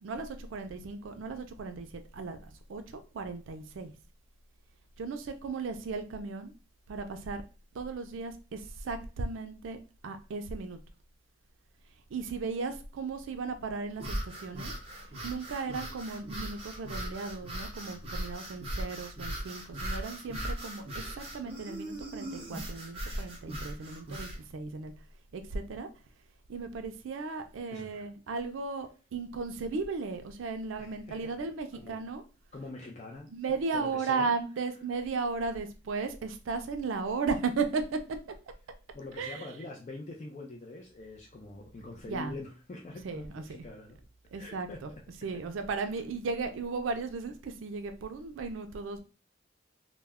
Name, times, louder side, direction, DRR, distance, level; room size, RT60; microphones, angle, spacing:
voice 1, 0.0-3.9 5.0-6.5 6.9-7.4 7.7-9.8 10.0-10.8 12.1-14.7 15.2-24.9 25.3-25.9 26.5-32.2 33.3-38.0 39.2-39.5 42.0-42.3 43.0-43.6 44.3-44.9 45.1-49.0, right 4 dB, 80° right, 8 dB, 0.4 m, -36 dB
sound 1, 13.9-24.4, right 1 dB, 30° right, 0.6 m, -39 dB
voice 2, 27.7-28.0 30.8-32.0 32.5-34.3 38.9-44.0 44.3-45.4 45.7-45.9, left 2 dB, 35° left, 0 dB, 0.4 m, -45 dB
2.2 x 2.1 x 3.4 m, 0.34 s
head